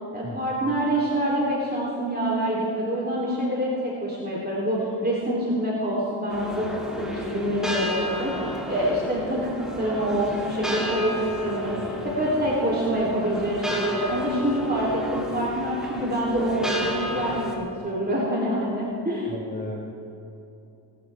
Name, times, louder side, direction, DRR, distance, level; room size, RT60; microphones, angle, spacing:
voice 1, 0.1-19.3, right 1 dB, 20° right, -6 dB, 3.7 m, -26 dB
sound 1, 6.3-17.6, left 1 dB, ahead, 3.4 m, -32 dB
voice 2, 19.3-19.9, left 2 dB, 15° left, 0 dB, 1.4 m, -35 dB
22.5 x 12.0 x 3.7 m, 2.9 s
cardioid pair, 55°, 47 cm